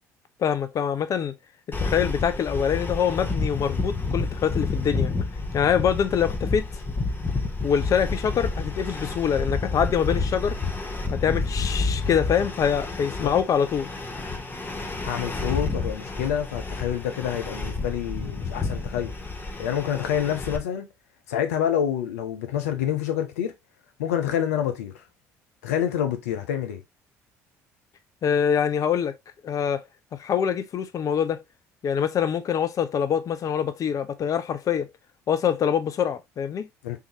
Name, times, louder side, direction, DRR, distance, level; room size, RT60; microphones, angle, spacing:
voice 1, 0.4-1.3 1.8-5.1 5.5-6.6 7.6-10.6 11.1-13.9 28.2-29.2 29.4-29.9 30.1-31.4 31.8-34.9 35.3-36.7, left 8 dB, 45° left, 0.6 m, -24 dB
sound 1, 1.7-20.6, left 3 dB, 25° left, 0.9 m, -30 dB
voice 2, 15.0-19.1 19.6-20.9 21.3-23.5 24.0-25.0 25.6-26.8 36.8-37.0, left 9 dB, 85° left, 0.7 m, -27 dB
3.5 x 2.8 x 3.1 m
hypercardioid pair, 60°, 8 cm